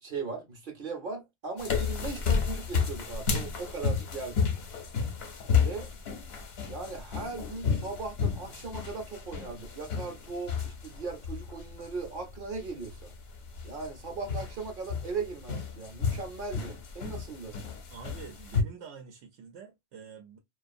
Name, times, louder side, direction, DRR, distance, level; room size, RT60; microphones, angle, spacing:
voice 1, 0.0-4.5 5.6-5.9 6.7-13.1 13.6-17.6, right 4 dB, 55° right, 0.8 m, -38 dB
sound 1, 1.6-18.6, left 6 dB, 65° left, 0.9 m, -32 dB
voice 2, 17.9-20.4, right 6 dB, 85° right, 0.9 m, -46 dB
2.4 x 2.4 x 2.5 m
omnidirectional pair, 1.2 m